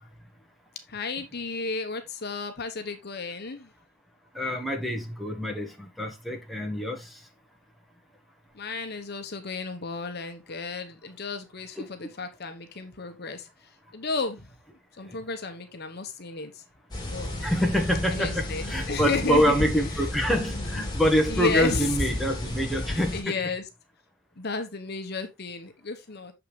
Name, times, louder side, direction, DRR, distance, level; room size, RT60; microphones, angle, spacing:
voice 1, 0.9-3.7 8.5-13.5 13.9-14.5 15.0-16.6 17.1-17.3 18.1-19.6 20.3-20.9 21.3-21.9 22.9-23.6 24.4-26.3, left 3 dB, 55° left, 1.1 m, -33 dB
voice 2, 4.3-7.2 11.8-11.9 15.0-15.2 17.4-23.3, equal, ahead, 1.4 m, -26 dB
sound 1, 16.9-23.2, left 1 dB, 20° left, 2.8 m, -32 dB
7.0 x 5.7 x 3.2 m
head